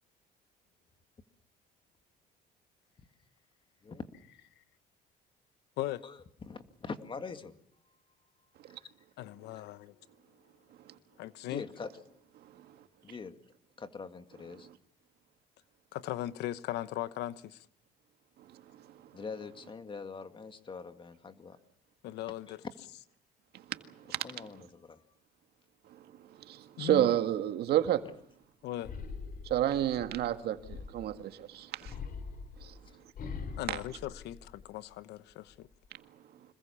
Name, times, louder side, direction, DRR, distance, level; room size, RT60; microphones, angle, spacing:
voice 1, 6.0-7.6 8.7-8.9 11.4-12.2 13.0-13.4 13.8-14.7 19.1-21.6 22.5-22.7 24.2-25.0, left 5 dB, 30° left, 2.1 m, -43 dB
voice 2, 9.2-9.9 11.2-11.6 15.9-17.7 22.0-22.6 26.8-27.1 28.6-28.9 33.6-35.7, left 13 dB, 85° left, 1.1 m, -38 dB
voice 3, 23.7-24.5 26.4-28.1 29.4-32.0 32.6-32.7 33.7-33.8, right 12 dB, 70° right, 1.9 m, -31 dB
sound 1, 28.8-31.2 31.8-34.9 35.3-35.9, left 5 dB, 60° left, 3.9 m, -43 dB
26.0 x 21.0 x 7.1 m
cardioid pair, 110°, 17 cm